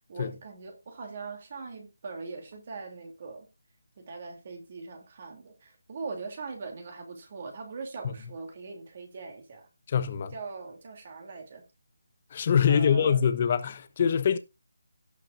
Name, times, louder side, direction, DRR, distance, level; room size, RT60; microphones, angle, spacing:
voice 1, 0.1-3.5 4.0-9.7 10.3-11.6 12.7-13.2, right 4 dB, 40° right, 2.9 m, -41 dB
voice 2, 9.9-10.3 12.3-14.4, left 7 dB, 35° left, 1.0 m, -24 dB
17.5 x 6.0 x 2.5 m
figure-of-eight pair, 165°, 0 cm